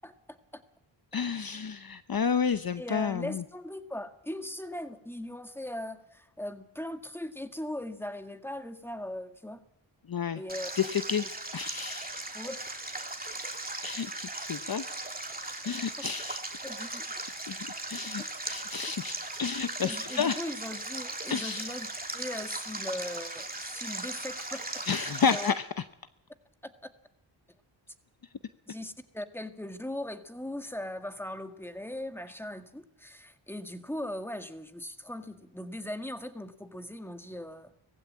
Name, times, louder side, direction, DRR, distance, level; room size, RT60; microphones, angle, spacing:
voice 1, 0.0-0.6 2.8-9.6 10.4-10.7 12.3-12.8 16.0-16.1 16.6-17.1 18.2-18.3 19.8-21.9 22.1-24.6 24.9-25.5 26.6-26.9 28.7-37.7, left 1 dB, 5° left, 7 dB, 2.0 m, -39 dB
voice 2, 1.1-3.4 10.1-10.4 10.8-11.3 11.5-12.1 13.8-14.9 15.6-16.4 17.5-20.4 21.3-21.7 24.9-25.6, left 6 dB, 45° left, 11 dB, 0.9 m, -31 dB
Stream, 10.5-25.5, right 2 dB, 20° right, 2.8 m, -38 dB
19.5 x 15.5 x 8.7 m, 0.83 s
cardioid pair, 50°, 49 cm